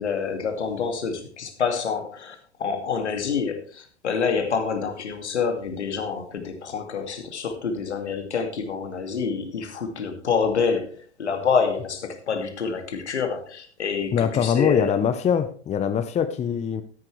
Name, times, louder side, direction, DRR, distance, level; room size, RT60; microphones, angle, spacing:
voice 1, 0.0-14.9, left 5 dB, 75° left, 6 dB, 2.6 m, -27 dB
voice 2, 14.1-16.8, left 8 dB, 20° left, 10 dB, 0.9 m, -23 dB
13.0 x 10.5 x 3.3 m, 0.41 s
figure-of-eight pair, 100°, 34 cm